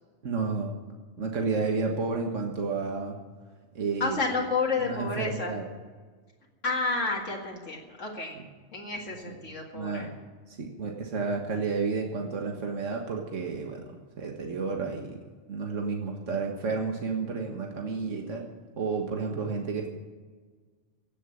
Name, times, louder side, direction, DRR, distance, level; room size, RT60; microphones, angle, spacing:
voice 1, 0.2-0.8 1.2-3.2 3.8-4.2 4.8-5.6 8.4-8.5 9.3-9.4 9.7-10.1 10.6-13.8 14.2-15.2 15.5-18.4 18.8-19.9, right 4 dB, 85° right, 1 dB, 1.9 m, -31 dB
voice 2, 4.0-5.5 6.6-8.4 8.7-10.1, left 3 dB, 85° left, -1 dB, 2.4 m, -30 dB
16.5 x 7.7 x 10.0 m, 1.5 s
omnidirectional pair, 1.3 m